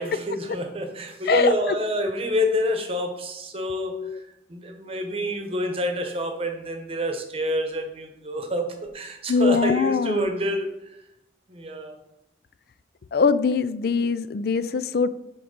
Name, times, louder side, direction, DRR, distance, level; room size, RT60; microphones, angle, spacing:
voice 1, 0.0-10.7 11.5-11.9, equal, 30° right, 5 dB, 1.0 m, -27 dB
voice 2, 9.3-10.3 13.1-15.1, left 5 dB, 55° left, 15 dB, 0.4 m, -22 dB
6.2 x 4.6 x 5.1 m, 0.87 s
head